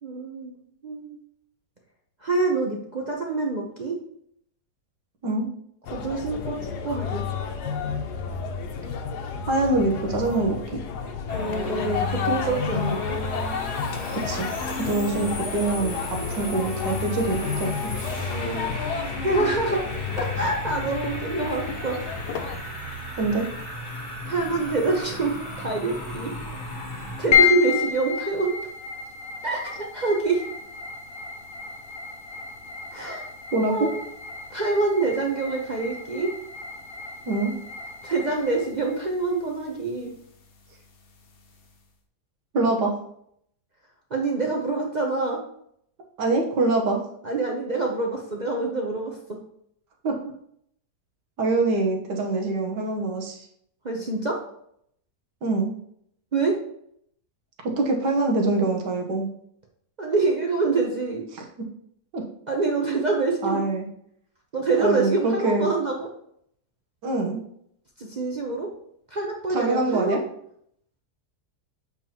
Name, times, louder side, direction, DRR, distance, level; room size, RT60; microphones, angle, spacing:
voice 1, 0.0-1.2 2.2-4.0 5.9-7.2 11.3-13.2 15.0-15.3 18.3-18.7 19.2-19.8 20.2-22.0 24.3-26.3 27.2-28.6 29.4-30.4 32.9-33.2 33.7-34.0 34.5-36.3 38.0-40.1 44.1-45.4 47.2-49.2 53.8-54.4 56.3-56.6 60.0-61.2 62.5-63.6 64.5-66.1 68.0-68.7 69.1-70.3, right 3 dB, 55° right, 0 dB, 0.4 m, -26 dB
sound 1, 5.8-22.6, left 6 dB, 75° left, 1.2 m, -31 dB
voice 2, 9.5-10.8 14.3-14.5 14.8-17.9 23.2-23.5 33.5-33.9 37.3-37.5 42.5-42.9 46.2-47.0 50.0-50.2 51.4-53.4 55.4-55.7 57.6-59.3 61.3-61.4 62.1-62.2 63.4-63.9 64.8-65.7 67.0-67.4 69.5-70.2, right 2 dB, 85° right, 1 dB, 1.7 m, -24 dB
sound 2, 11.3-27.3, left 1 dB, 40° left, 1.3 m, -35 dB
sound 3, 27.3-41.8, left 8 dB, 55° left, 0.6 m, -31 dB
7.2 x 4.5 x 2.9 m, 0.69 s
omnidirectional pair, 1.8 m